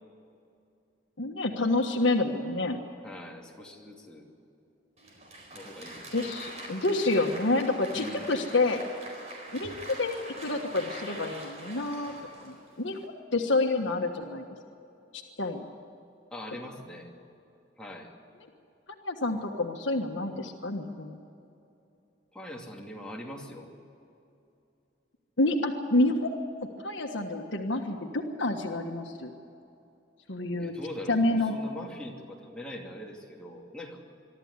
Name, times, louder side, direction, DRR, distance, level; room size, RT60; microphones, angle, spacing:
voice 1, 1.2-2.8 6.1-8.8 9.5-12.1 12.4-14.4 15.1-15.7 19.0-21.2 25.4-26.3 26.8-29.3 30.3-30.7 31.1-31.5, left 2 dB, 80° left, 3 dB, 1.5 m, -28 dB
voice 2, 3.0-4.2 5.5-6.1 7.9-8.3 16.3-17.1 17.8-18.1 22.3-23.7 30.6-34.0, left 1 dB, 5° left, -2 dB, 2.7 m, -42 dB
Applause, 5.0-13.1, right 1 dB, 35° right, 4.4 m, -44 dB
23.5 x 13.0 x 9.8 m, 2.7 s
head